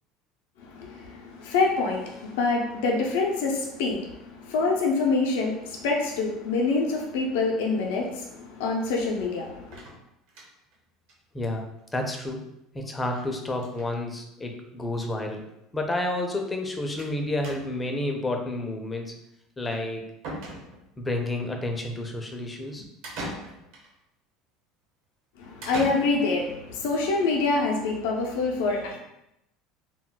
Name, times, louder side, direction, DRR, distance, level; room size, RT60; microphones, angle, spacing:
voice 1, 0.6-9.8 25.4-29.0, left 3 dB, 90° left, 0 dB, 0.4 m, -26 dB
sound 1, 9.7-10.7 11.1-11.2 11.5-11.6 11.8-11.9 13.1-13.3 13.5-13.9 14.8-14.9 15.1-15.2 17.0-17.2 17.4-17.9 19.7-19.8 20.2-21.0 23.0-23.9 25.6-26.5, right 1 dB, 70° right, 1.0 m, -39 dB
voice 2, 11.3-12.4 12.7-15.5 15.7-19.1 19.6-20.0 21.0-22.9, left 2 dB, 15° left, 2 dB, 0.4 m, -30 dB
2.2 x 2.1 x 3.8 m, 0.84 s
cardioid pair, 140°, 0 cm